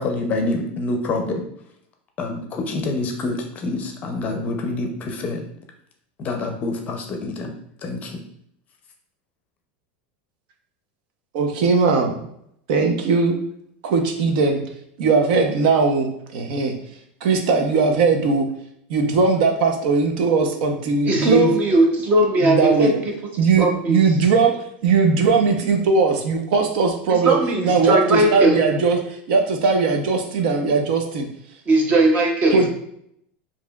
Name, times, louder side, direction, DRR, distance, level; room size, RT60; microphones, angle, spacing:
voice 1, 0.0-1.4 2.2-3.3 3.6-5.4 6.2-7.5 7.8-8.2, left 2 dB, 30° left, 4 dB, 0.5 m, -26 dB
voice 2, 11.3-12.3 12.7-13.4 13.8-14.6 15.0-16.7 17.2-18.5 18.9-21.5 22.4-22.9 23.4-24.6 24.8-27.4 27.6-31.3 32.5-32.7, right 4 dB, 65° right, 3 dB, 0.7 m, -19 dB
voice 3, 21.0-23.0 23.4-24.0 27.1-28.6 31.7-32.7, right 2 dB, 30° right, 2 dB, 0.7 m, -18 dB
4.7 x 2.7 x 2.3 m, 0.71 s
supercardioid pair, 145°, 5 cm